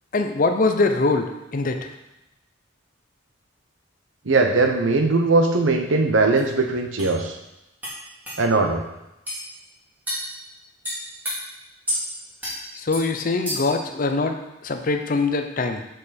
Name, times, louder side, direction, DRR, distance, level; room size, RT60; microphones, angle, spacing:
voice 1, 0.1-1.8 12.8-15.8, left 3 dB, 45° left, 6 dB, 0.6 m, -23 dB
voice 2, 4.3-7.3 8.4-8.8, right 3 dB, 80° right, 4 dB, 0.8 m, -20 dB
sound 1, 6.4-6.5 7.0-7.1 7.8-8.0 8.3-8.4 9.3-9.4 10.1-10.3 10.8-11.4 11.9-12.0 12.4-12.6 12.9-13.1 13.5-13.8, equal, 10° right, 2.1 m, -29 dB
6.3 x 5.3 x 4.2 m, 0.92 s
head